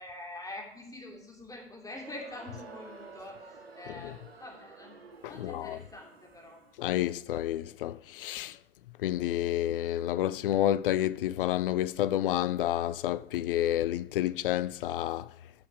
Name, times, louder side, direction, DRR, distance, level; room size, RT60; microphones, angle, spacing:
voice 1, 0.0-5.0 5.2-6.6, left 2 dB, 10° left, 3.2 m, -45 dB
Crowd, 1.9-6.9, right 4 dB, 80° right, 1.1 m, -51 dB
voice 2, 5.2-5.8 6.8-8.6 9.0-15.3, left 12 dB, 65° left, 0.5 m, -29 dB
13.5 x 5.5 x 4.9 m
figure-of-eight pair, 75°, 30 cm